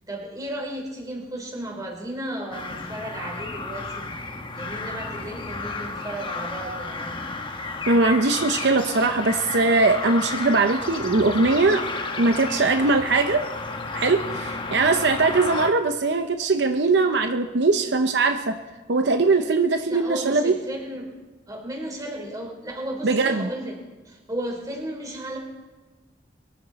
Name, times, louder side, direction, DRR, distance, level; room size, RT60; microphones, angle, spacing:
voice 1, 0.1-4.1 4.6-7.2 19.9-21.1 21.5-23.8 24.1-25.4, right 1 dB, 20° right, 0 dB, 3.5 m, -34 dB
sound 1, 2.5-15.7, left 3 dB, 30° left, 1.2 m, -32 dB
voice 2, 7.9-11.8 12.2-13.4 13.9-18.5 18.9-20.5 23.0-23.5, right 3 dB, 70° right, 6 dB, 0.7 m, -21 dB
22.5 x 13.0 x 4.1 m, 1.3 s
head